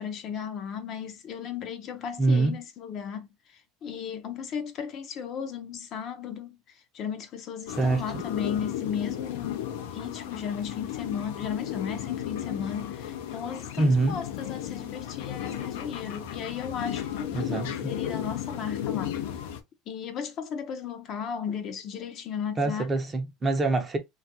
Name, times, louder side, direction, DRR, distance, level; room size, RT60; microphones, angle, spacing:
voice 1, 0.0-9.6 9.9-19.2 19.9-22.9, left 7 dB, 40° left, 0.5 m, -35 dB
voice 2, 2.2-2.6 7.7-8.2 13.8-14.2 17.3-17.9 22.6-24.0, right 3 dB, 15° right, 0.5 m, -25 dB
sound 1, 7.7-19.6, left 10 dB, 90° left, 0.5 m, -34 dB
3.0 x 2.4 x 2.7 m
cardioid pair, 155°, 0 cm